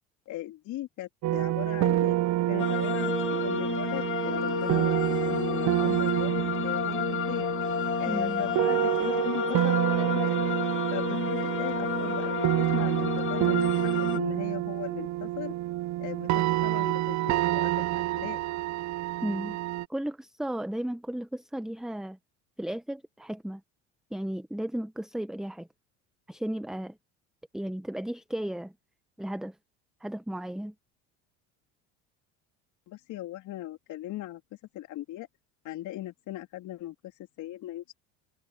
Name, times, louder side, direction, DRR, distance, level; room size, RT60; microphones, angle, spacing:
voice 1, 0.3-2.2 2.5-7.5 8.0-10.4 10.9-15.5 16.0-18.4 32.9-34.4 34.7-35.3 35.6-37.0 37.4-37.9, left 14 dB, 60° left, 3.7 m, -38 dB
sound 1, 1.2-19.9, right 15 dB, 55° right, 1.0 m, -28 dB
sound 2, 2.6-14.2, left 10 dB, 35° left, 2.0 m, -31 dB
voice 2, 8.1-8.5 19.2-19.6 19.9-22.2 22.6-23.6 24.1-25.7 26.3-27.0 27.5-28.7 29.2-29.6 30.0-30.7, right 1 dB, ahead, 1.0 m, -34 dB
hypercardioid pair, 80°, 34 cm